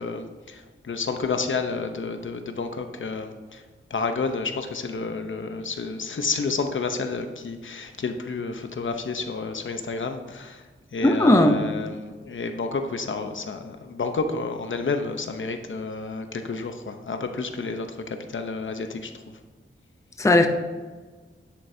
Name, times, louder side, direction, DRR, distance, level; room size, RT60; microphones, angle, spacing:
voice 1, 0.0-3.6 3.9-10.6 10.9-19.1, left 4 dB, 65° left, 6 dB, 0.8 m, -30 dB
voice 2, 11.0-11.6 20.2-20.5, left 1 dB, 15° left, 5 dB, 0.6 m, -17 dB
10.5 x 7.6 x 2.7 m, 1.4 s
wide cardioid pair, 115°, 21 cm